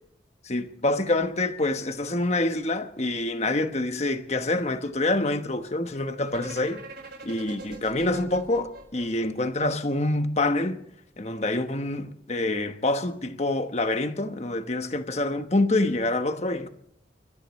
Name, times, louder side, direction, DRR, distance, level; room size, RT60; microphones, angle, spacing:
voice 1, 0.4-6.8 7.2-10.8 11.2-16.7, left 2 dB, 35° left, 1.1 m, -26 dB
sound 1, 6.3-10.2, right 3 dB, 60° right, 4.5 m, -43 dB
29.5 x 15.0 x 3.2 m
head